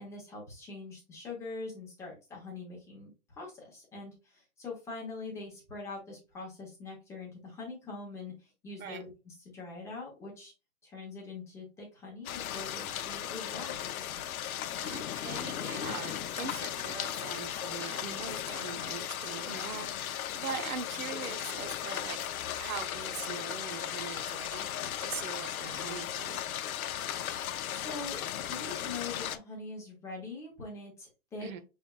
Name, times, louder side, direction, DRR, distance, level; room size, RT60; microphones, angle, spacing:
voice 1, 0.0-3.1 3.4-10.5 10.8-14.2 27.7-28.2 28.5-31.5, left 3 dB, 5° left, 0.8 m, -43 dB
sound 1, 12.2-29.4, left 11 dB, 80° left, 0.7 m, -36 dB
voice 2, 14.8-22.2 22.6-26.4 31.4-31.6, right 7 dB, 75° right, 0.9 m, -42 dB
5.5 x 3.4 x 2.3 m
hypercardioid pair, 165°, 42 cm